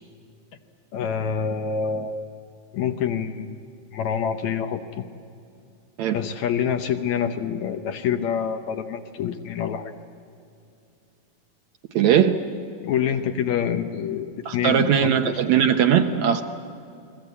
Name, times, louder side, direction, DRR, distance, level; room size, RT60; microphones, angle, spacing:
voice 1, 0.9-2.2 2.7-3.6 3.9-5.0 6.1-9.9 12.8-15.4, left 8 dB, 65° left, 7 dB, 2.0 m, -26 dB
voice 2, 11.9-12.4 14.5-16.4, right 9 dB, 70° right, 7 dB, 1.9 m, -19 dB
29.5 x 21.5 x 8.4 m, 2.5 s
omnidirectional pair, 3.9 m